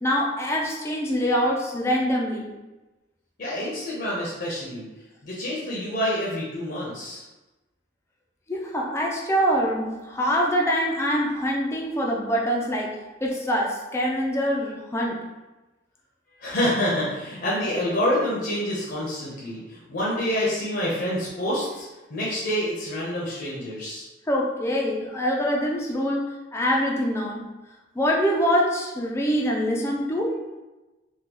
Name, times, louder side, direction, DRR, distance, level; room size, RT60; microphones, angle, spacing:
voice 1, 0.0-2.5 8.5-15.2 24.3-27.5 27.9-30.4, equal, 15° left, -2 dB, 0.4 m, -24 dB
voice 2, 3.4-4.9 5.2-7.2 16.4-24.1, equal, 50° left, -6 dB, 0.7 m, -27 dB
3.7 x 2.2 x 2.9 m, 1.1 s
head